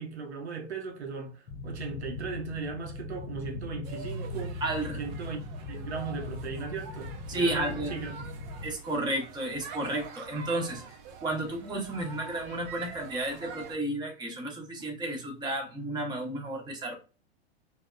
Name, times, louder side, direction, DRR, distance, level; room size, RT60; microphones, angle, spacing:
voice 1, 0.0-4.6 5.0-5.4 5.7-8.3, right 5 dB, 80° right, 0.7 m, -37 dB
sound 1, 1.5-8.7, left 2 dB, 25° left, 0.4 m, -39 dB
sound 2, 3.8-13.8, right 6 dB, 40° right, 0.5 m, -46 dB
voice 2, 4.6-5.0 7.3-7.9 8.6-10.8 11.2-16.9, right 1 dB, 15° right, 0.8 m, -32 dB
2.7 x 2.1 x 2.3 m
figure-of-eight pair, 100°, 33 cm